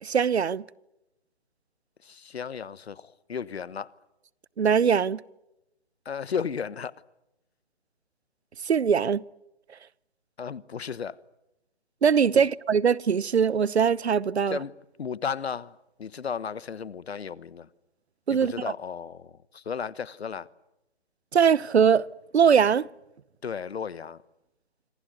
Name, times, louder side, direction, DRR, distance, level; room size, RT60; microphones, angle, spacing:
voice 1, 0.0-0.6 4.6-5.2 8.6-9.2 12.0-14.6 18.3-18.5 21.3-22.1 22.3-22.9, right 7 dB, 75° right, 1.0 m, -21 dB
voice 2, 2.0-3.9 6.0-7.0 10.4-11.2 12.3-12.4 14.5-17.7 18.3-20.5 23.4-24.2, left 6 dB, 70° left, 1.3 m, -34 dB
26.5 x 25.5 x 8.1 m
hypercardioid pair, 155°, 33 cm